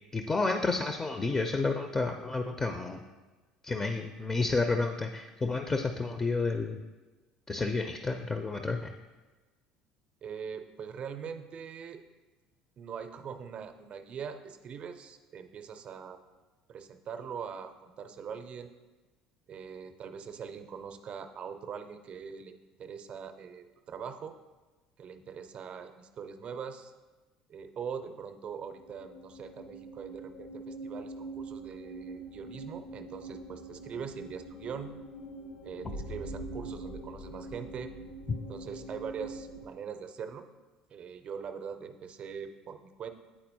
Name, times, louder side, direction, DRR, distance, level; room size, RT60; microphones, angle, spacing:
voice 1, 0.1-3.0 3.6-6.8 7.5-8.9 38.3-38.4, left 3 dB, 20° left, 6 dB, 0.4 m, -30 dB
voice 2, 10.2-12.0 12.8-16.2 16.7-18.7 19.5-24.3 25.0-26.9 27.5-34.9 35.6-37.9 38.5-40.4 40.9-43.1, right 7 dB, 45° right, 8 dB, 0.5 m, -42 dB
sound 1, 28.6-39.7, right 1 dB, 70° left, 0.6 m, -44 dB
8.7 x 4.2 x 2.7 m, 1.2 s
figure-of-eight pair, 60°, 3 cm